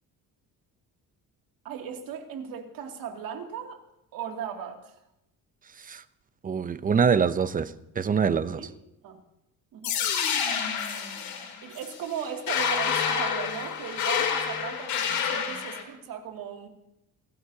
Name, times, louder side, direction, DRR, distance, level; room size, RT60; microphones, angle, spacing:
voice 1, 1.6-3.8 4.1-5.0 8.6-8.7 9.0-9.2 9.7-10.0 11.6-16.7, right 7 dB, 75° right, 2 dB, 2.6 m, -37 dB
voice 2, 6.4-8.7, right 6 dB, 25° right, 14 dB, 0.6 m, -25 dB
sound 1, 9.8-15.8, left 7 dB, 80° left, 3.3 m, -28 dB
28.5 x 14.5 x 2.8 m, 0.87 s
cardioid pair, 140°, 35 cm